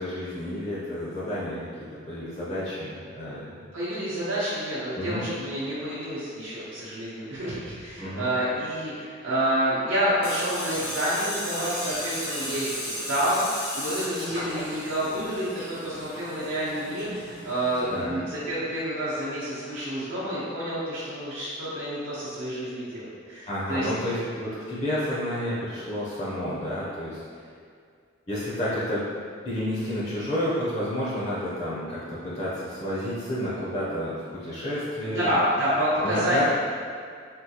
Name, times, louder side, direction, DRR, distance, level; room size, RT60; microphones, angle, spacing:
voice 1, 0.0-3.5 5.0-5.2 8.0-8.3 17.9-18.2 23.5-27.5 28.3-29.0 29.4-35.3 36.0-36.4, left 1 dB, 35° left, -8 dB, 0.5 m, -30 dB
voice 2, 3.7-23.9 35.0-36.4, equal, 65° right, -10 dB, 0.7 m, -28 dB
Tools, 10.2-18.0, equal, 90° left, 1.2 m, -35 dB
3.6 x 2.3 x 2.8 m, 2.1 s
head